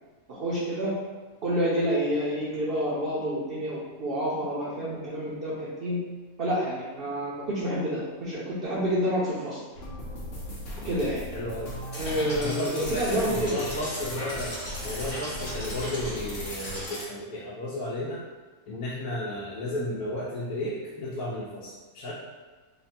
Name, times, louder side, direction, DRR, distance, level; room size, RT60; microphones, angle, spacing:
voice 1, 0.3-0.9 1.4-6.0 6.4-9.6 10.8-11.2 11.9-13.6, equal, 50° right, -8 dB, 0.7 m, -28 dB
sound 1, 9.7-16.9, left 1 dB, 60° left, 1.0 m, -38 dB
voice 2, 11.3-11.7 12.4-14.6 14.8-18.2 18.7-22.1, left 1 dB, 85° left, -7 dB, 1.1 m, -33 dB
sound 2, 11.9-17.0, left 1 dB, 30° left, 1.0 m, -37 dB
3.2 x 2.1 x 4.2 m, 1.3 s
omnidirectional pair, 1.5 m